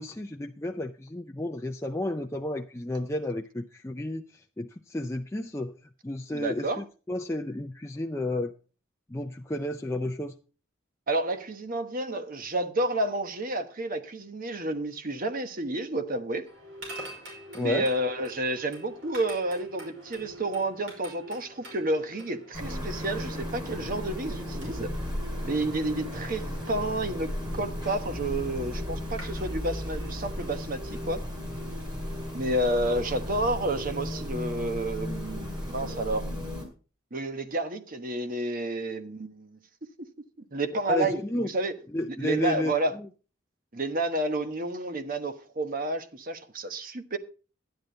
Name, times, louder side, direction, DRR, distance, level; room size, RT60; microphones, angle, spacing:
voice 1, 0.0-5.7 6.0-8.5 9.1-10.3 17.5-17.9 40.9-41.5 41.9-43.1, left 1 dB, 15° left, 0.5 m, -32 dB
voice 2, 6.3-6.8 11.1-16.5 17.6-24.9 25.4-31.2 32.3-36.3 37.1-39.6 40.5-41.7 42.2-43.0 43.7-47.2, right 1 dB, 45° right, 1.1 m, -30 dB
sound 1, 16.4-35.9, equal, 70° right, 5.4 m, -46 dB
sound 2, 22.5-36.6, left 1 dB, 20° right, 4.4 m, -35 dB
12.0 x 10.5 x 3.9 m
head